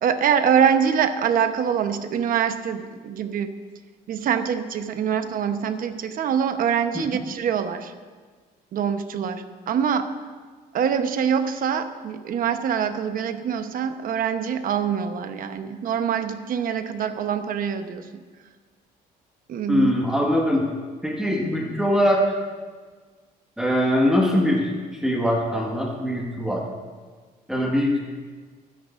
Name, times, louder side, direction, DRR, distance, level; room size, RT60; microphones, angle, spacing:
voice 1, 0.0-3.5 4.1-7.9 8.7-10.1 10.7-18.2 19.5-19.9, right 8 dB, 55° right, 8 dB, 1.0 m, -24 dB
voice 2, 19.7-20.7 21.0-22.3 23.6-24.7 25.0-26.6 27.5-28.0, equal, 5° right, -2 dB, 1.7 m, -22 dB
26.0 x 10.0 x 2.6 m, 1.5 s
cardioid pair, 110°, 17 cm